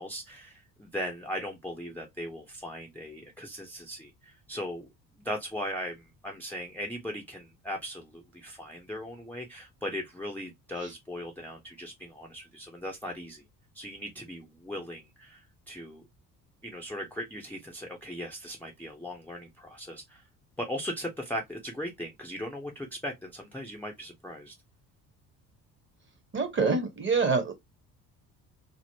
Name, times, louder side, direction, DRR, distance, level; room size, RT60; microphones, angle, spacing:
voice 1, 0.0-4.9 5.2-13.4 13.7-16.0 16.6-20.2 20.6-24.5, equal, 5° left, 0.5 m, -38 dB
voice 2, 26.3-27.5, right 4 dB, 25° right, 0.9 m, -26 dB
3.5 x 2.0 x 2.7 m
figure-of-eight pair, 50°, 48 cm